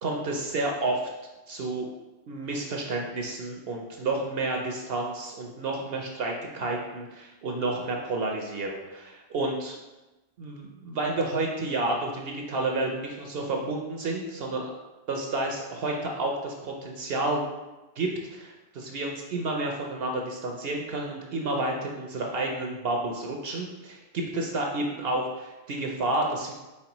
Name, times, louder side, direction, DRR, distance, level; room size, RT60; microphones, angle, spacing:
voice 1, 0.0-1.0 1.5-1.9 2.3-9.8 10.4-14.7 15.1-17.4 18.0-26.5, right 2 dB, 60° right, 1 dB, 0.7 m, -30 dB
4.3 x 4.2 x 2.9 m, 1.1 s
omnidirectional pair, 1.3 m